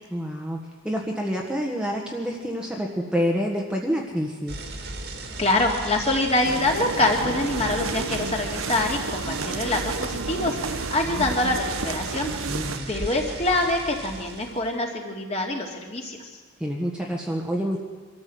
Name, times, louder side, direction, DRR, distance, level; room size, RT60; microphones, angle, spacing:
voice 1, 0.1-4.5 12.5-12.9 16.6-17.8, equal, 5° right, -1 dB, 1.5 m, -28 dB
sound 1, 4.5-14.8, right 2 dB, 55° right, 2.3 m, -36 dB
voice 2, 5.4-12.3 12.9-16.3, left 2 dB, 30° left, 1 dB, 2.6 m, -25 dB
sound 2, 6.4-12.8, right 4 dB, 80° right, 0.9 m, -31 dB
24.0 x 13.5 x 7.9 m, 1.5 s
head